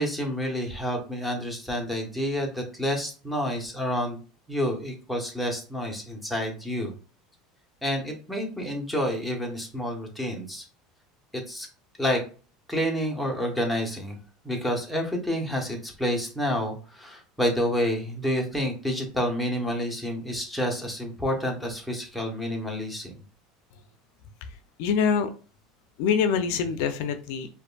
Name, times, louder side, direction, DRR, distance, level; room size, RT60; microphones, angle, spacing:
voice 1, 0.0-4.2 4.5-6.9 7.8-10.6 11.3-11.7 12.0-12.2 12.7-14.2 14.4-23.1, equal, ahead, 0 dB, 1.1 m, -29 dB
voice 2, 24.8-25.3 26.0-27.5, left 6 dB, 75° left, 9 dB, 0.4 m, -24 dB
5.0 x 2.5 x 2.3 m, 0.36 s
supercardioid pair, 120°, 0 cm